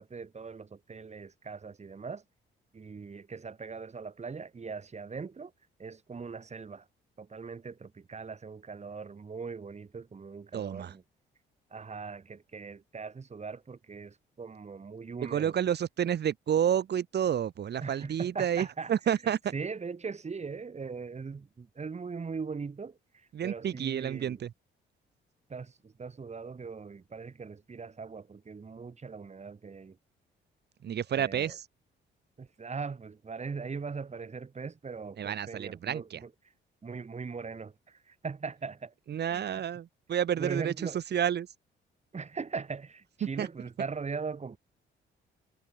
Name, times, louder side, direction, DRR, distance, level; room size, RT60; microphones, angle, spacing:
voice 1, 0.0-2.2 2.7-5.5 5.8-6.9 7.2-11.0 11.7-15.6 17.8-18.9 19.5-24.4 25.5-30.0 31.1-31.6 32.4-36.3 36.8-38.9 39.2-39.6 40.4-41.0 42.1-44.6, right 5 dB, 35° right, 7.1 m, -40 dB
voice 2, 10.5-10.9 15.2-19.4 23.3-24.5 30.8-31.6 35.2-36.2 39.1-40.7 41.1-41.5 43.4-43.5, right 9 dB, 55° right, 1.8 m, -30 dB
cardioid pair, 90°, 20 cm